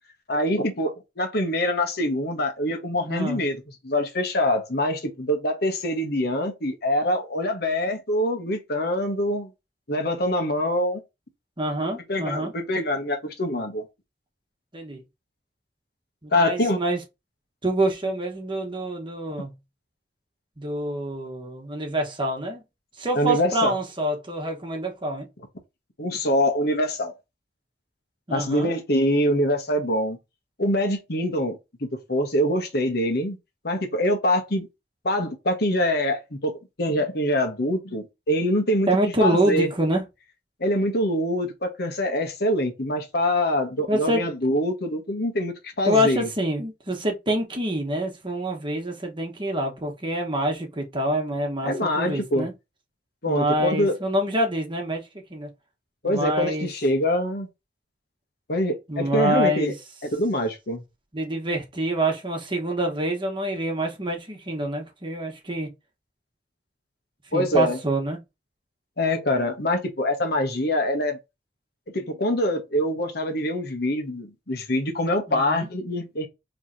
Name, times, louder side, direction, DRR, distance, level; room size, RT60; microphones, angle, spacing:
voice 1, 0.3-9.5 9.9-11.0 12.1-13.8 16.3-16.8 23.1-23.7 26.0-27.1 28.3-30.2 30.6-33.4 33.6-34.7 35.0-36.5 36.8-38.9 39.2-39.7 40.6-46.3 51.6-52.5 53.2-54.0 56.0-57.5 58.5-59.7 60.1-60.8 67.3-67.8 69.0-71.2 71.9-76.3, left 1 dB, 60° left, 1.3 m, -24 dB
voice 2, 3.1-3.4 11.6-12.5 14.7-15.0 16.2-17.0 17.6-19.5 20.6-22.6 23.0-25.3 28.3-28.7 38.9-40.0 43.9-44.3 45.9-52.5 53.2-55.0 55.3-55.5 56.0-56.7 58.9-59.7 61.1-65.7 67.3-68.2 75.3-75.7, right 1 dB, 30° right, 1.3 m, -26 dB
4.7 x 3.3 x 2.7 m
head